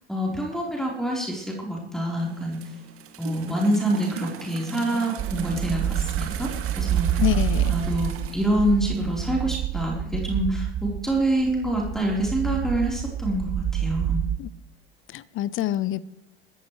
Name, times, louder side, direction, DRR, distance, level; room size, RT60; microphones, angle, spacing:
voice 1, 0.1-2.6 3.2-6.5 6.8-7.1 7.7-14.2, right 1 dB, ahead, -4 dB, 4.2 m, -26 dB
sound 1, 2.2-9.3, right 8 dB, 45° right, 2.1 m, -39 dB
sound 2, 5.2-14.4, right 11 dB, 30° right, 0.6 m, -28 dB
voice 2, 7.2-7.7 14.4-14.5 15.1-16.0, left 14 dB, 40° left, 19 dB, 0.8 m, -26 dB
28.0 x 14.0 x 3.3 m, 0.85 s
figure-of-eight pair, 65°, 31 cm